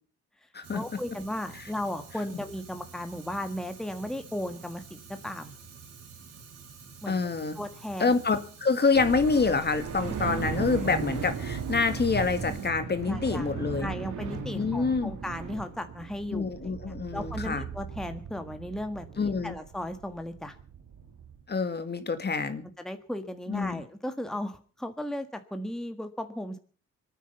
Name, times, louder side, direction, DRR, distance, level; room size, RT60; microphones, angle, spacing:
Fire, 0.6-12.7, right 5 dB, 60° right, 4.6 m, -50 dB
voice 1, 0.7-5.5 7.0-7.2 7.5-8.1 13.0-13.5 13.8-16.5 16.8-20.6 22.8-26.6, left 1 dB, ahead, 7 dB, 1.6 m, -36 dB
voice 2, 7.1-7.6 8.0-13.9 14.5-15.1 16.3-17.6 19.2-19.5 21.5-22.7 23.5-23.8, left 4 dB, 35° left, 9 dB, 2.0 m, -27 dB
sound 1, 8.9-21.4, right 6 dB, 80° right, 3.1 m, -37 dB
24.5 x 9.4 x 5.6 m, 0.42 s
cardioid pair, 90°, 30 cm